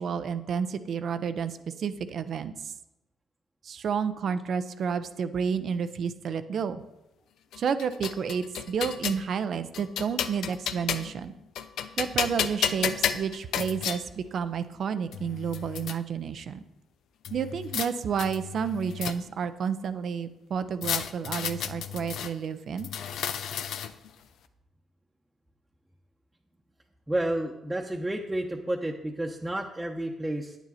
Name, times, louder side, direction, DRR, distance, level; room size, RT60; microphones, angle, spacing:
voice 1, 0.0-2.7 3.6-6.8 7.6-11.3 12.0-16.6 17.3-22.9, right 6 dB, 60° right, 11 dB, 0.7 m, -30 dB
sound 1, 7.5-9.2 9.7-11.2 11.6-14.0 14.8-14.9 15.1-16.0 17.2-17.9 18.2-19.5 20.8-22.3 22.8-24.1, left 8 dB, 75° left, 0.6 m, -32 dB
voice 2, 27.1-30.6, right 1 dB, 15° right, -1 dB, 1.0 m, -31 dB
9.3 x 9.2 x 4.2 m, 0.93 s
supercardioid pair, 60°, 0 cm